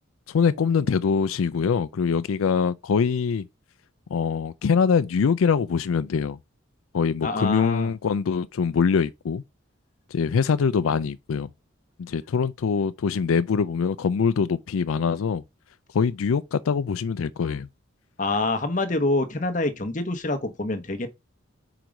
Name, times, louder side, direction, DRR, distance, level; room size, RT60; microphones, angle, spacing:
voice 1, 0.3-3.5 4.1-6.4 6.9-9.4 10.1-11.5 12.0-15.4 15.9-17.7, left 6 dB, 85° left, 0.4 m, -23 dB
voice 2, 7.2-7.9 18.2-21.1, left 2 dB, 40° left, 0.9 m, -26 dB
4.9 x 4.6 x 5.2 m
head